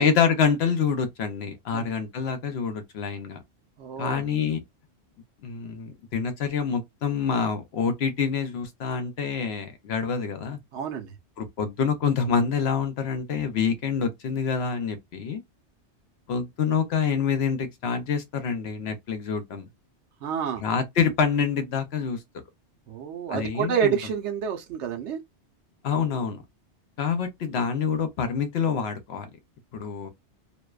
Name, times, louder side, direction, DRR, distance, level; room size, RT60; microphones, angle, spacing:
voice 1, 0.0-3.4 4.0-4.6 5.4-10.6 11.4-15.4 16.3-19.7 20.6-22.2 23.3-24.0 25.8-26.4 27.0-29.3 29.7-30.1, left 6 dB, 70° left, 0.8 m, -26 dB
voice 2, 3.8-4.2 10.7-11.1 20.2-20.6 22.9-25.2, right 8 dB, 80° right, 1.0 m, -28 dB
2.6 x 2.1 x 2.2 m
omnidirectional pair, 1.2 m